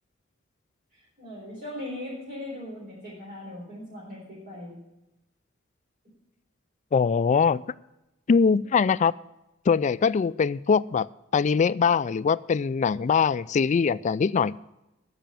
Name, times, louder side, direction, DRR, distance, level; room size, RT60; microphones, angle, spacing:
voice 1, 0.9-4.8, left 1 dB, 45° right, -7 dB, 4.1 m, -39 dB
voice 2, 6.9-7.6 8.3-9.1 9.7-11.1 11.3-14.6, left 5 dB, 35° left, 17 dB, 0.3 m, -22 dB
10.0 x 6.9 x 9.1 m, 0.93 s
head